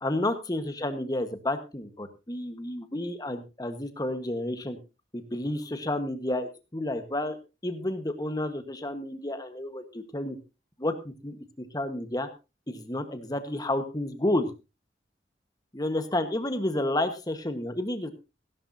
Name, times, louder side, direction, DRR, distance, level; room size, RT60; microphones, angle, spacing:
voice 1, 0.0-4.8 5.1-7.4 7.6-10.4 10.8-12.3 12.7-14.5 15.7-18.1, left 1 dB, 20° left, 8 dB, 1.4 m, -31 dB
15.5 x 12.5 x 2.8 m, 0.29 s
head